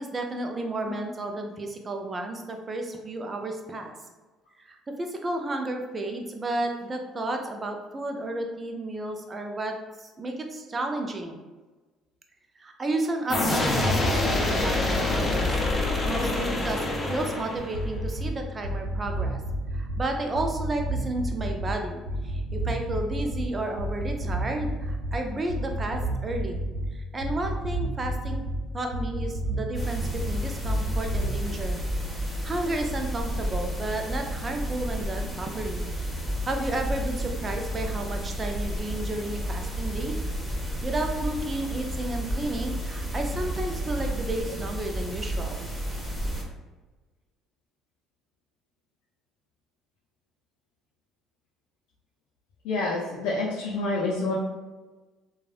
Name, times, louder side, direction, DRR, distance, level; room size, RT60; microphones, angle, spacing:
voice 1, 0.0-3.9 4.6-11.4 12.6-19.4 19.7-26.6 26.9-28.4 28.7-31.8 32.4-35.9 36.5-40.2 40.8-45.6, right 2 dB, 30° right, 4 dB, 0.5 m, -32 dB
sound 1, 13.3-18.0, left 2 dB, 30° left, 0.6 m, -26 dB
sound 2, 17.6-18.3 18.6-20.0 20.3-21.7 22.1-23.4 23.8-25.2 25.5-26.9 27.2-28.6 28.9-30.3 30.6-31.3, right 1 dB, 80° right, 0.6 m, -30 dB
sound 3, 29.7-46.4, equal, ahead, 1.3 m, -31 dB
voice 2, 52.6-54.3, left 2 dB, 80° left, -4 dB, 0.5 m, -27 dB
3.1 x 2.3 x 2.4 m, 1.2 s
hypercardioid pair, 65°, 0 cm